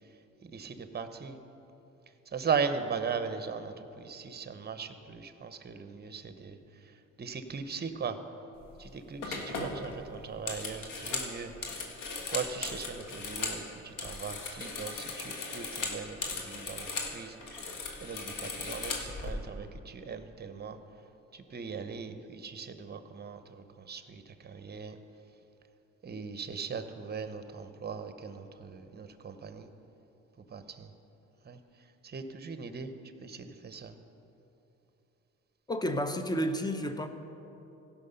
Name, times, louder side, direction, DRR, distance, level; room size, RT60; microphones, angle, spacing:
voice 1, 0.4-1.4 2.3-6.6 7.2-8.2 8.8-11.5 12.2-17.6 18.0-20.8 21.3-25.0 26.0-29.7 30.5-30.9 31.5-31.6 32.0-32.9 33.2-33.9, right 6 dB, 35° right, 9 dB, 0.8 m, -38 dB
sound 1, 8.6-8.8 9.2-13.6 13.9-17.1 17.4-19.3, left 4 dB, 85° left, 1.6 m, -37 dB
voice 2, 35.7-37.1, equal, 15° left, 8 dB, 0.8 m, -31 dB
16.0 x 5.9 x 5.6 m, 2.9 s
cardioid pair, 90°, 30 cm